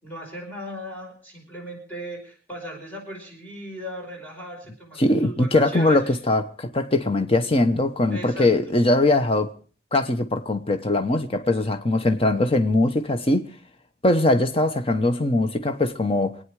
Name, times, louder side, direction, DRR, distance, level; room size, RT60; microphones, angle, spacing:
voice 1, 0.0-6.0 8.1-8.5, equal, 10° left, 5.1 m, -37 dB
voice 2, 5.0-9.5 9.9-13.5 14.0-16.4, left 2 dB, 30° left, 1.0 m, -21 dB
27.5 x 9.5 x 4.8 m
head